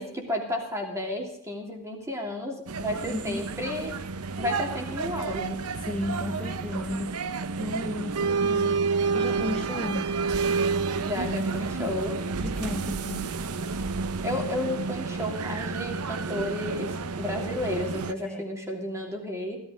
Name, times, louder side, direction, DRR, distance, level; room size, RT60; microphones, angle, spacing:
voice 1, 0.0-3.9 4.4-5.7 11.0-12.2 14.2-19.6, left 1 dB, 15° right, 2 dB, 2.9 m, -32 dB
sound 1, 2.7-18.1, right 4 dB, 80° right, 0.7 m, -30 dB
voice 2, 2.9-3.5 5.8-10.1 12.4-13.3 18.2-18.4, left 1 dB, 5° left, 4 dB, 0.6 m, -34 dB
16.5 x 13.0 x 5.1 m, 0.73 s
head